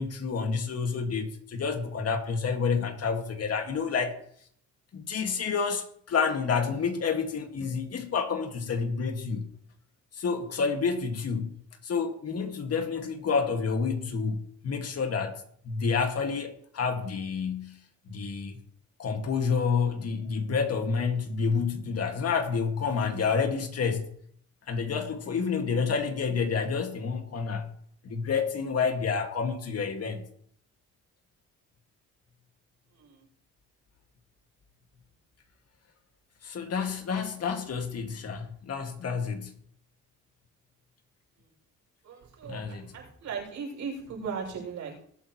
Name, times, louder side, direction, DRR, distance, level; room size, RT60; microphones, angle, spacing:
voice 1, 0.0-4.2 4.9-9.4 10.1-11.5 11.8-14.4 14.6-17.8 18.1-18.6 19.0-24.0 24.7-27.7 28.0-30.2 36.4-39.5 42.5-42.9, left 5 dB, 55° left, 2.2 m, -29 dB
voice 2, 42.0-45.0, right 5 dB, 75° right, 6.7 m, -38 dB
20.5 x 9.1 x 3.2 m
cardioid pair, 90°, 30 cm